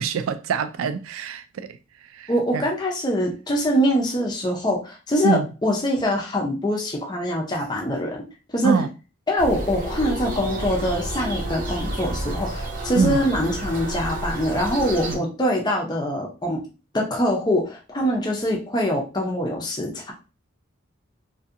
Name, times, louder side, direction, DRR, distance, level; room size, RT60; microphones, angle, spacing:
voice 1, 0.0-1.8 2.1-2.6 5.2-5.5 8.6-8.9 13.0-13.2 15.1-15.2, right 5 dB, 75° right, 0.3 m, -25 dB
voice 2, 2.3-8.2 8.5-8.8 9.3-16.6 16.9-20.1, equal, 20° left, 0.5 m, -24 dB
sound 1, 9.4-15.2, right 1 dB, 40° right, 0.6 m, -30 dB
2.7 x 2.6 x 2.5 m
head